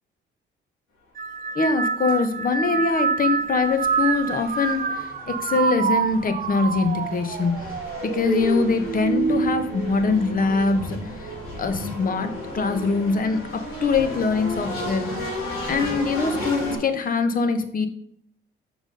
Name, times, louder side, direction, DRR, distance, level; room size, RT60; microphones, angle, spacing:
sound 1, 1.2-10.8 11.2-11.8 12.8-13.1, right 5 dB, 45° right, 1.0 m, -27 dB
voice 1, 1.5-7.7 8.0-11.3 11.6-15.1 15.7-17.9, left 4 dB, 45° left, 9 dB, 1.1 m, -23 dB
sound 2, 2.0-2.1 2.6-16.8, left 1 dB, 85° left, 3.3 m, -34 dB
6.2 x 5.1 x 5.2 m, 0.68 s
cardioid pair, 90°, 20 cm